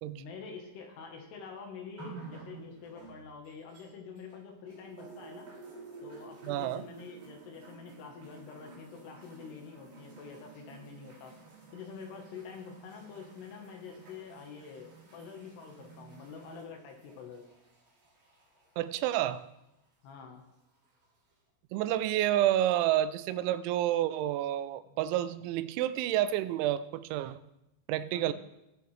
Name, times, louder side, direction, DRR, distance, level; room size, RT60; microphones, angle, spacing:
voice 1, 0.0-5.5 6.0-11.3 11.7-17.4 20.0-20.4 24.9-25.0 28.1-28.3, left 5 dB, 70° left, 2 dB, 3.2 m, -47 dB
sound 1, 2.0-4.3 4.7-19.4 20.3-20.4, right 4 dB, 55° right, 4.9 m, -52 dB
voice 2, 6.4-6.8 18.8-19.5 21.7-27.4 27.9-28.3, right 13 dB, 90° right, 14 dB, 2.9 m, -29 dB
18.0 x 6.7 x 3.3 m, 0.89 s
omnidirectional pair, 5.2 m